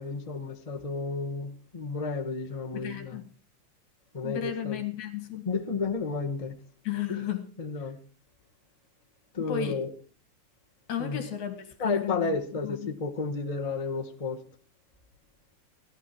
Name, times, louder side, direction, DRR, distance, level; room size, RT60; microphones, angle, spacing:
voice 1, 0.0-3.2 4.1-4.8 5.4-6.5 7.1-7.3 7.6-8.0 9.3-9.9 11.0-11.2 11.8-14.4, left 4 dB, 25° left, 2 dB, 0.7 m, -32 dB
voice 2, 2.7-3.3 4.2-5.5 6.8-7.5 9.5-9.8 10.9-12.3 12.6-13.0, left 10 dB, 70° left, 8 dB, 3.3 m, -34 dB
18.0 x 12.5 x 4.5 m, 0.40 s
omnidirectional pair, 3.5 m